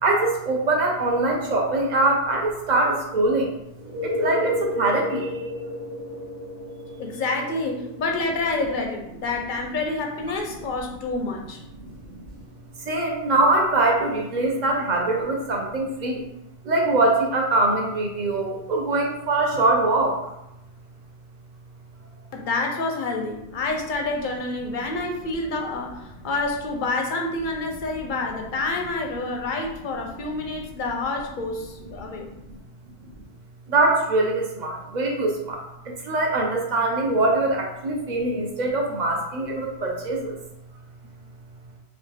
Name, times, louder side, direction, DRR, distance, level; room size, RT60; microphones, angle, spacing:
voice 1, 0.0-3.5 4.0-5.4 11.8-11.9 12.9-16.2 16.6-20.2 32.0-32.2 33.7-40.4, right 2 dB, 45° right, 0 dB, 0.7 m, -23 dB
sound 1, 3.7-15.3 19.5-19.6, left 1 dB, 60° right, 1.1 m, -35 dB
voice 2, 7.0-11.6 22.3-32.3, left 3 dB, 55° left, 2 dB, 0.6 m, -28 dB
3.1 x 2.6 x 3.3 m, 0.86 s
omnidirectional pair, 1.1 m